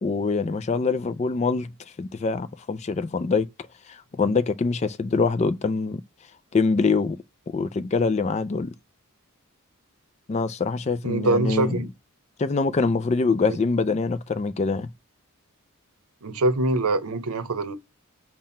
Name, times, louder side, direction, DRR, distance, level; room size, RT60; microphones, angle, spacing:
voice 1, 0.0-1.7 2.0-3.5 3.9-6.0 6.5-7.2 7.5-8.7 10.3-11.8 12.4-14.9, left 4 dB, 30° left, 0.3 m, -24 dB
voice 2, 11.0-11.9 13.5-13.6 16.2-17.8, right 2 dB, 90° right, 0.7 m, -24 dB
5.7 x 2.2 x 4.1 m
head